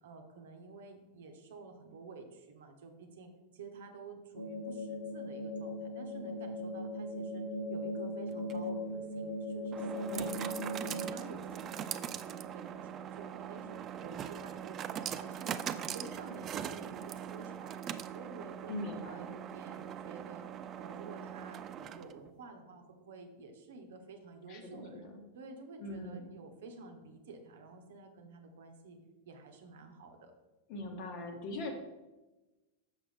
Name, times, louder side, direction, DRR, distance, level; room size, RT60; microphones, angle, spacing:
voice 1, 0.0-10.6 10.8-18.7 19.0-20.5 20.7-25.1 25.3-29.0 29.2-30.3, right 3 dB, 60° right, 5 dB, 0.8 m, -50 dB
sound 1, 4.3-11.1, equal, 65° left, 0.7 m, -38 dB
sound 2, 8.3-22.3, right 9 dB, 30° right, 0.3 m, -42 dB
voice 2, 10.1-10.6 18.7-19.3 24.5-25.2 25.8-26.3 30.7-31.7, left 1 dB, 45° left, 3 dB, 1.2 m, -42 dB
6.6 x 6.1 x 3.3 m, 1.1 s
figure-of-eight pair, 90°, 0 cm